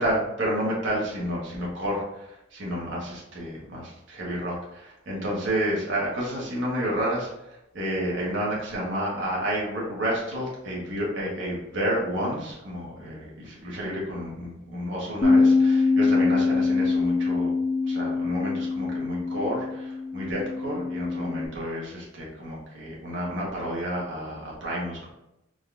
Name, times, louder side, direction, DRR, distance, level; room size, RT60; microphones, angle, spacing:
voice 1, 0.0-17.5 17.8-25.1, equal, 65° right, -4 dB, 1.3 m, -30 dB
Bass guitar, 15.2-21.5, left 4 dB, 40° left, 0.4 m, -23 dB
4.0 x 2.5 x 3.4 m, 0.88 s
head